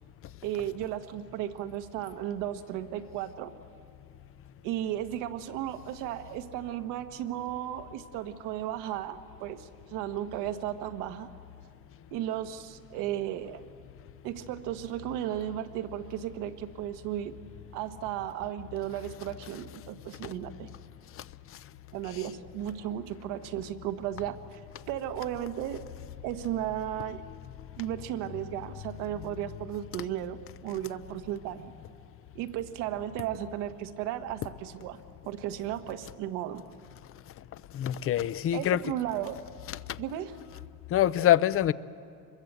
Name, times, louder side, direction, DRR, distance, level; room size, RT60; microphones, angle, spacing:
voice 1, 0.4-3.5 4.6-11.3 12.1-13.6 14.2-17.3 17.7-20.7 21.9-24.6 24.9-25.8 26.2-27.2 27.8-31.7 32.3-35.0 35.2-36.6 38.5-39.4 40.0-40.4, right 12 dB, 90° right, 1.4 m, -35 dB
voice 2, 37.7-38.8 39.7-39.8 40.9-41.7, left 12 dB, 45° left, 0.7 m, -25 dB
25.5 x 22.0 x 8.1 m
cardioid pair, 120°, 31 cm